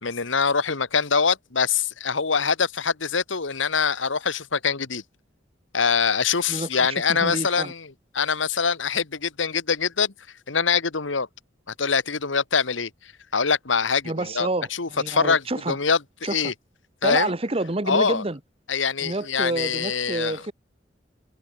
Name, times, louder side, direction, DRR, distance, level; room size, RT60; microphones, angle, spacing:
voice 1, 0.0-5.0 5.7-7.9 8.1-10.1 10.5-11.3 11.8-12.9 13.3-16.5 17.0-17.3 17.9-18.2 18.7-20.4, left 5 dB, 80° left, 1.6 m, -24 dB
voice 2, 6.5-7.7 14.0-15.8 16.2-16.4 17.0-18.4 19.0-20.5, right 2 dB, 30° right, 1.2 m, -28 dB
head